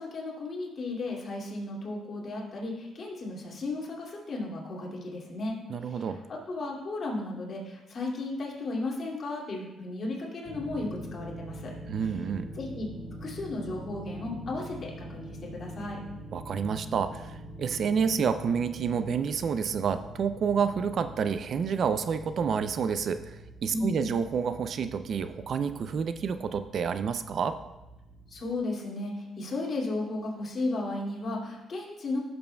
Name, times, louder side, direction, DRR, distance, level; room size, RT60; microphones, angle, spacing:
voice 1, 0.0-11.7 12.6-12.9 13.2-16.0 23.7-24.1 28.3-32.2, left 2 dB, 50° left, -3 dB, 2.3 m, -34 dB
voice 2, 5.7-6.2 11.9-12.5 16.3-23.4 23.6-27.6, right 6 dB, 55° right, 10 dB, 0.4 m, -29 dB
sound 1, 10.4-28.6, right 1 dB, 30° right, 2.0 m, -44 dB
13.5 x 6.9 x 2.2 m, 1.0 s
cardioid pair, 90°, 0 cm